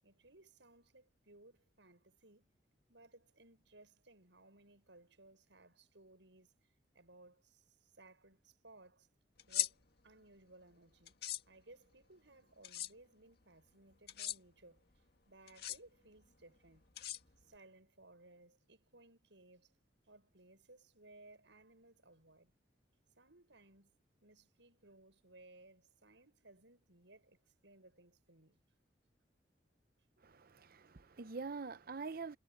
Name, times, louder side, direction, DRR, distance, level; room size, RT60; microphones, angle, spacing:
voice 1, 0.0-2.5 2.9-6.5 6.9-9.1 9.5-9.8 10.0-11.2 11.5-16.9 17.4-19.7 20.1-22.5 23.2-24.0 24.2-28.6, right 2 dB, 75° right, 7.3 m, -62 dB
sound 1, 9.4-9.7 11.1-11.4 12.6-12.9 14.1-14.4 15.5-15.8 17.0-17.6, left 11 dB, 55° left, 1.9 m, -38 dB
voice 2, 30.2-32.4, right 4 dB, 55° right, 0.7 m, -45 dB
head